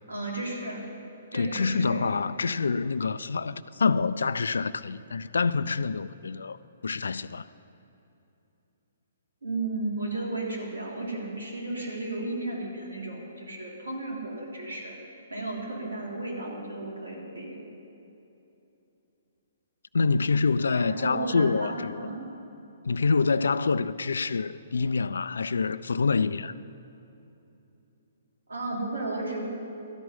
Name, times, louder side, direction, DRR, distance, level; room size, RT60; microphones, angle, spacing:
voice 1, 0.1-0.8 1.3-2.2 9.4-14.9 15.3-17.5 20.7-22.2 28.5-29.4, right 2 dB, 85° right, 3.4 m, -34 dB
voice 2, 1.3-6.6 6.8-7.4 19.9-22.1 22.8-26.5, left 4 dB, 80° left, 0.4 m, -26 dB
12.5 x 6.2 x 9.1 m
hypercardioid pair, 130°, 0 cm